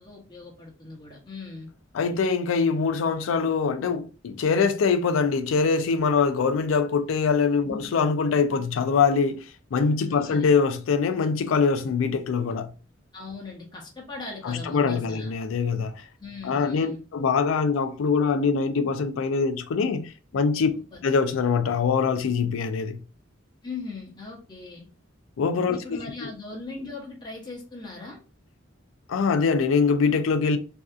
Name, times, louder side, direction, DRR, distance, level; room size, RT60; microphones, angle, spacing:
voice 1, 0.0-1.7 7.6-7.8 10.1-10.5 13.1-15.3 16.2-17.0 20.8-21.0 23.6-24.9 25.7-28.2, left 3 dB, 20° left, 0.7 m, -39 dB
voice 2, 1.9-12.7 14.4-16.0 16.4-20.7 21.0-23.0 25.4-26.3 29.1-30.6, left 5 dB, 90° left, 0.4 m, -23 dB
2.6 x 2.3 x 2.3 m
head